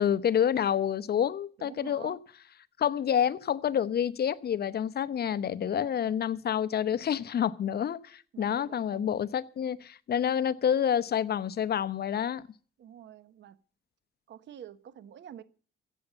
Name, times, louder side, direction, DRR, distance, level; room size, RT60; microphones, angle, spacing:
voice 1, 0.0-2.2 2.8-12.4, left 9 dB, 55° left, 0.8 m, -28 dB
voice 2, 1.6-2.2 5.6-6.2 8.3-9.2 12.8-13.6 14.3-15.4, right 9 dB, 65° right, 1.2 m, -48 dB
15.0 x 8.2 x 7.9 m
cardioid pair, 90°, 20 cm